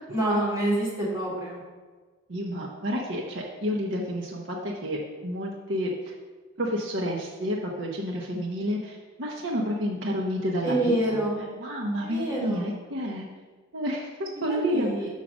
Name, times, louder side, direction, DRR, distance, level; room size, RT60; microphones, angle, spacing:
voice 1, 0.1-1.6 10.6-11.4 12.0-12.7 14.5-15.1, right 1 dB, 15° right, -7 dB, 2.7 m, -27 dB
voice 2, 2.3-6.1 6.6-13.3 13.7-14.9, equal, 60° right, -1 dB, 0.9 m, -30 dB
6.1 x 5.7 x 6.2 m, 1.3 s
head